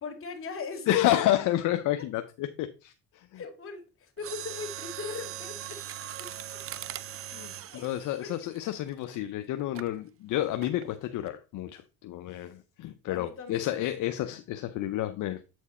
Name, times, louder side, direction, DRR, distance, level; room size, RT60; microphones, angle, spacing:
voice 1, 0.0-1.0 2.0-2.1 3.3-5.8 6.2-6.6 7.7-7.9 8.2-8.7 13.1-13.9, left 4 dB, 40° left, 2.3 m, -40 dB
voice 2, 0.9-3.4 7.3-15.4, left 13 dB, 65° left, 0.7 m, -30 dB
Mechanisms, 4.2-9.2 9.7-10.0 10.6-10.9 11.3-11.4, right 10 dB, 40° right, 0.6 m, -40 dB
8.3 x 4.7 x 4.2 m
supercardioid pair, 90°, 34 cm